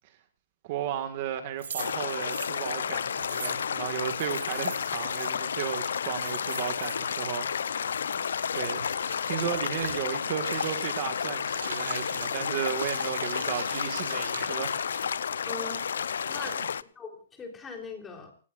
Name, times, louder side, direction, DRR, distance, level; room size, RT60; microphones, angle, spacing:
voice 1, 0.6-8.0 8.5-8.8 9.3-15.2 16.5-16.7, right 11 dB, 35° right, 7 dB, 1.8 m, -34 dB
sound 1, 1.6-5.3 5.8-5.9 6.1-7.2, right 7 dB, 70° right, 6.6 m, -41 dB
sound 2, 1.8-16.8, left 7 dB, 75° left, 0.7 m, -31 dB
Crumpling crinkling, 8.2-15.0, right 5 dB, 85° right, 7.1 m, -43 dB
voice 2, 15.5-15.9 16.3-16.6 17.0-18.3, left 4 dB, 10° left, 2 dB, 3.5 m, -40 dB
28.5 x 18.0 x 2.5 m, 0.36 s
hypercardioid pair, 165°, 0 cm